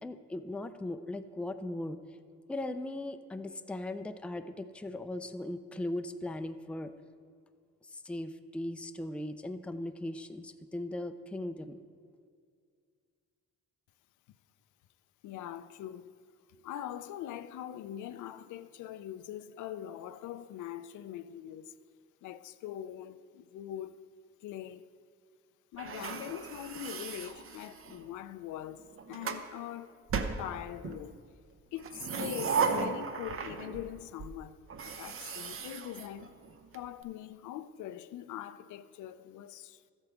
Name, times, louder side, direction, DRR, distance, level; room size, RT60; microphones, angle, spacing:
voice 1, 0.0-2.0 2.5-6.9 7.9-11.8, left 1 dB, 5° left, 0.4 m, -38 dB
voice 2, 15.2-16.1 16.6-21.7 22.2-23.9 24.4-24.9 25.7-30.0 30.4-31.2 31.7-34.6 34.8-36.3 36.7-39.8, left 11 dB, 80° left, 0.5 m, -42 dB
sound 1, 25.8-28.1 28.8-29.5 30.1-31.0 31.7-33.9 34.2-34.3 34.7-36.8, right 5 dB, 45° right, 0.8 m, -36 dB
13.5 x 8.0 x 3.5 m
cardioid pair, 90°, 30 cm